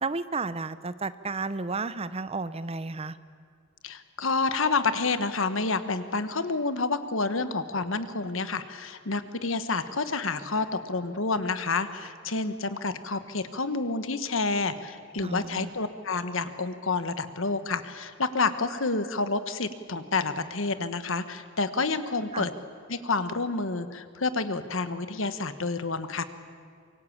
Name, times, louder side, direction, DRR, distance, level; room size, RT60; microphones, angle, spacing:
voice 1, 0.0-3.2 15.2-15.7 22.3-22.5, right 3 dB, 30° right, 15 dB, 0.7 m, -32 dB
voice 2, 3.8-22.5 22.9-26.2, left 3 dB, 70° left, 11 dB, 1.4 m, -29 dB
25.0 x 22.5 x 8.7 m, 2.1 s
head